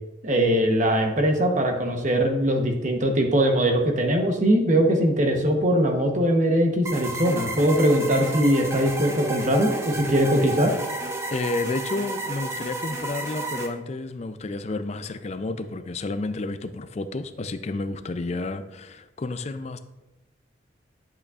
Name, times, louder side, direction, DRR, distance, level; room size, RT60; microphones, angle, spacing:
voice 1, 0.2-10.7, equal, 40° right, 3 dB, 0.9 m, -21 dB
sound 1, 6.9-13.7, right 2 dB, 15° right, 0.6 m, -31 dB
voice 2, 11.3-19.8, left 2 dB, 35° left, 10 dB, 0.4 m, -31 dB
8.8 x 8.1 x 2.4 m, 1.0 s
head